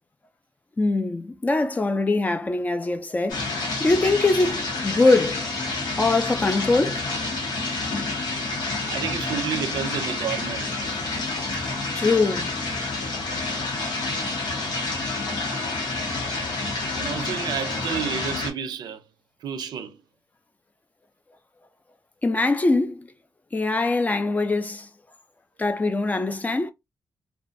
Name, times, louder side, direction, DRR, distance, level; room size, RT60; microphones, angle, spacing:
voice 1, 0.8-5.4 6.0-7.0 11.9-12.5 22.2-23.1 23.5-24.9 25.6-26.7, left 3 dB, 20° left, 0.3 m, -22 dB
sound 1, 3.3-18.5, left 3 dB, 85° left, 0.9 m, -28 dB
voice 2, 8.9-10.9 16.9-19.0 19.4-20.0, right 8 dB, 85° right, 0.4 m, -30 dB
2.5 x 2.2 x 2.5 m
wide cardioid pair, 125°, 7 cm